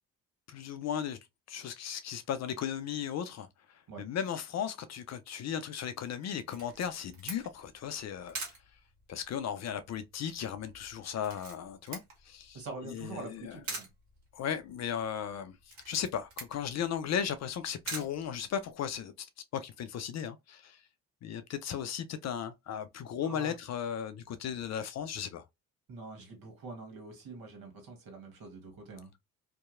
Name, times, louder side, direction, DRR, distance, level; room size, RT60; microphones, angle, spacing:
voice 1, 0.5-1.2 1.5-3.5 4.0-8.4 9.1-13.6 14.3-19.1 19.5-20.8 21.2-25.4, left 8 dB, 40° left, 0.4 m, -36 dB
Camera, 6.5-19.0, right 3 dB, 85° right, 0.8 m, -47 dB
voice 2, 12.5-13.9 23.2-23.6 25.9-29.1, right 3 dB, 55° right, 1.3 m, -45 dB
2.7 x 2.2 x 2.4 m
hypercardioid pair, 45°, 41 cm